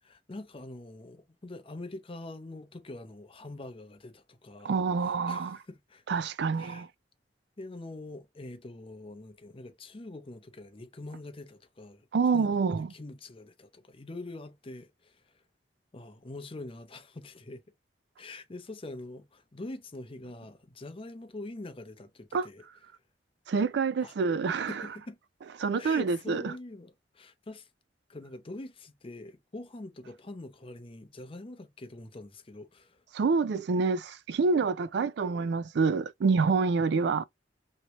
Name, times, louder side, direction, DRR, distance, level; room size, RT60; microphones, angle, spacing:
voice 1, 0.0-6.0 6.5-6.9 7.6-15.4 15.9-17.6 18.2-22.7 24.0-24.1 24.7-25.2 25.8-27.7 28.1-33.0, left 2 dB, 30° left, 0.7 m, -44 dB
voice 2, 4.6-5.6 6.1-6.9 12.1-12.9 22.3-22.5 23.5-24.7 25.6-26.4 33.1-37.2, right 4 dB, 65° right, 0.4 m, -27 dB
3.1 x 2.7 x 2.8 m
head